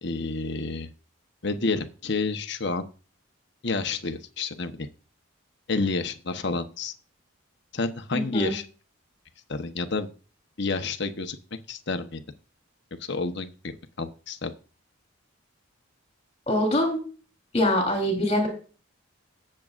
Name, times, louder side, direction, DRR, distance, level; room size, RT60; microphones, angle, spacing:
voice 1, 0.0-0.9 1.4-2.9 3.6-4.9 5.7-6.9 7.7-8.6 9.5-10.1 10.6-11.4 11.7-12.2 13.1-13.5 14.0-14.5, left 3 dB, 55° left, 8 dB, 1.1 m, -29 dB
voice 2, 8.1-8.5 16.5-17.0 17.5-18.5, left 1 dB, 30° left, 2 dB, 3.7 m, -23 dB
18.0 x 7.7 x 2.6 m, 0.37 s
head